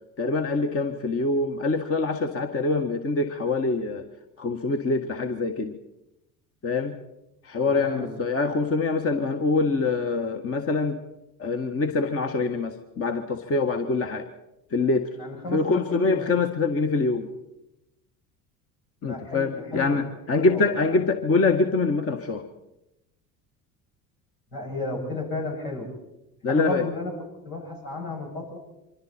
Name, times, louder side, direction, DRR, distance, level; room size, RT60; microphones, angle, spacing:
voice 1, 0.2-4.0 4.4-5.8 6.6-7.0 7.4-11.0 11.4-14.3 14.7-15.1 15.5-17.3 19.0-22.4 26.4-26.8, left 3 dB, 30° left, 6 dB, 1.6 m, -24 dB
voice 2, 7.6-8.2 15.1-16.3 19.0-20.0 20.3-21.1 24.5-25.9 26.5-28.6, left 3 dB, 75° left, -1 dB, 7.6 m, -33 dB
25.0 x 25.0 x 4.4 m, 0.93 s
hypercardioid pair, 65°, 44 cm